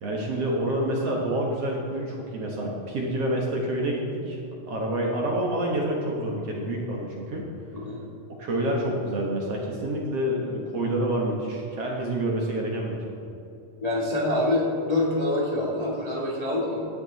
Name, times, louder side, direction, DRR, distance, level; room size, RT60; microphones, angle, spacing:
voice 1, 0.0-4.4 4.7-7.4 8.4-13.0, right 1 dB, 55° right, -1 dB, 1.9 m, -28 dB
voice 2, 13.8-16.8, left 1 dB, 25° left, -5 dB, 0.9 m, -26 dB
16.0 x 9.9 x 4.0 m, 2.8 s
omnidirectional pair, 4.0 m